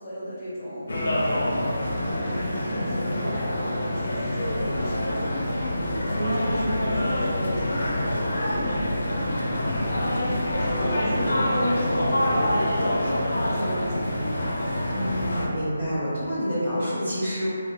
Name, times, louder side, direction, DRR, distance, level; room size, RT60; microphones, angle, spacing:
voice 1, 0.0-5.1 5.6-14.9, equal, 20° left, -11 dB, 1.0 m, -36 dB
sound 1, 0.9-15.5, left 1 dB, 65° left, 0.4 m, -26 dB
sound 2, 4.3-12.0 12.3-12.4 12.8-12.9, equal, 35° right, 1.0 m, -39 dB
voice 2, 14.9-17.5, equal, 60° right, -12 dB, 0.8 m, -28 dB
2.4 x 2.2 x 2.4 m, 2.4 s
figure-of-eight pair, 155°, 0 cm